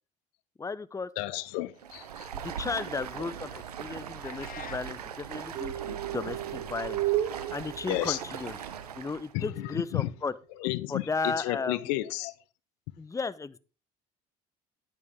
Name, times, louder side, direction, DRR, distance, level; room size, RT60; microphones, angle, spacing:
voice 1, 0.6-1.1 2.3-8.6 8.9-10.3 10.9-11.8 13.0-13.6, left 4 dB, 15° left, 0.7 m, -35 dB
voice 2, 1.2-2.3 7.8-8.2 9.3-9.5 9.7-10.1 10.6-12.3, left 18 dB, 70° left, 0.6 m, -32 dB
Stream, 1.8-9.3, right 8 dB, 90° right, 0.9 m, -40 dB
sound 1, 4.2-4.9, left 7 dB, 45° left, 1.4 m, -44 dB
sound 2, 5.5-8.5 9.4-9.9, right 13 dB, 60° right, 1.3 m, -33 dB
10.0 x 9.6 x 3.6 m
hypercardioid pair, 60°, 19 cm